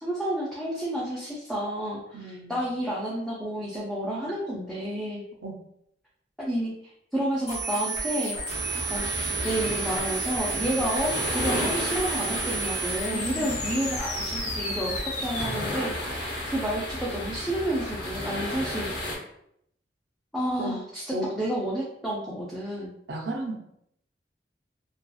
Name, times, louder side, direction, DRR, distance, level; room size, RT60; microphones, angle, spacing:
voice 1, 0.0-5.2 6.4-6.7 7.1-8.5 8.9-9.1 9.4-14.9 15.2-18.9 20.3-22.9, right 1 dB, ahead, -7 dB, 0.4 m, -30 dB
voice 2, 2.1-2.5 5.4-5.5 10.7-10.8 13.1-13.5 20.6-20.8 21.1-21.3 23.1-23.6, right 2 dB, 80° right, 1 dB, 0.6 m, -33 dB
sound 1, 7.5-15.5, right 4 dB, 40° left, 0.7 m, -32 dB
sound 2, 8.5-19.2, left 1 dB, 85° left, 0.8 m, -33 dB
2.7 x 2.3 x 2.3 m, 0.73 s
head